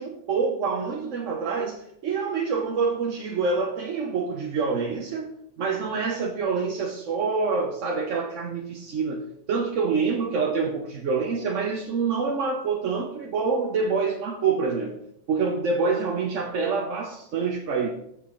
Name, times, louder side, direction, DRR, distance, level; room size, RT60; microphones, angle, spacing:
voice 1, 0.0-15.0 15.3-17.9, right 4 dB, 85° right, 1 dB, 1.2 m, -26 dB
14.5 x 6.6 x 3.1 m, 0.77 s
omnidirectional pair, 1.2 m